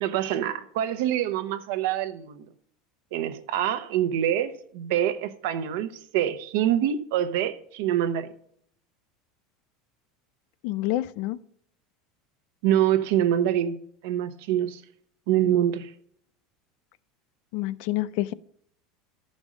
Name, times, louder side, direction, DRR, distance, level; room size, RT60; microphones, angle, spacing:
voice 1, 0.0-2.5 3.1-8.3 12.6-13.8 14.0-14.8 15.3-15.9, right 11 dB, 65° right, 0.9 m, -25 dB
voice 2, 10.6-11.4 17.5-18.3, left 16 dB, 50° left, 0.4 m, -28 dB
12.5 x 5.3 x 6.3 m
supercardioid pair, 175°, 0 cm